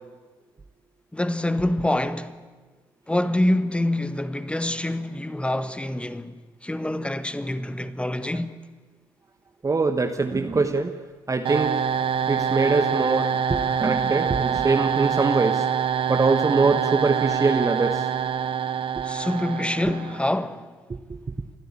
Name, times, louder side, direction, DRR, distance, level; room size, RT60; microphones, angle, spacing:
voice 1, 1.1-2.4 3.1-6.3 6.6-8.6 19.0-20.7, left 1 dB, 10° left, 1.4 m, -26 dB
voice 2, 9.6-10.9 11.3-11.8 12.3-15.7 16.1-18.1 21.1-21.2, right 4 dB, 30° right, 1.3 m, -23 dB
sound 1, 11.4-20.4, right 7 dB, 50° right, 0.9 m, -25 dB
29.0 x 12.0 x 8.6 m
hypercardioid pair, 45°, 11 cm